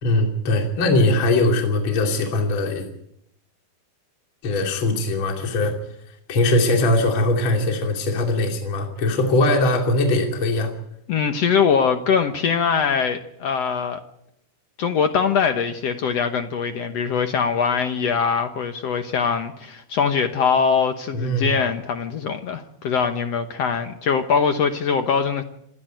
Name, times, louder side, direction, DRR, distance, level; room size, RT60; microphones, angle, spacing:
voice 1, 0.0-2.9 4.4-5.8 6.3-10.7 21.1-21.5, left 2 dB, 35° left, 2 dB, 3.1 m, -21 dB
voice 2, 11.1-14.0 14.8-25.4, left 6 dB, 75° left, 7 dB, 1.5 m, -22 dB
27.5 x 11.0 x 9.0 m, 0.75 s
omnidirectional pair, 4.5 m